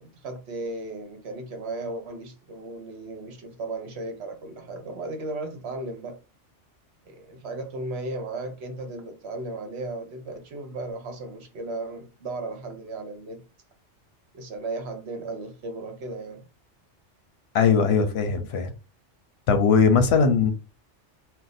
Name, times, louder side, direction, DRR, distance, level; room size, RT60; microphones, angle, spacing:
voice 1, 0.0-6.2 7.0-13.4 14.3-16.4, right 2 dB, 65° right, 0.9 m, -35 dB
voice 2, 17.5-18.7 19.5-20.5, left 5 dB, 65° left, 0.8 m, -20 dB
2.5 x 2.2 x 4.0 m
omnidirectional pair, 1.2 m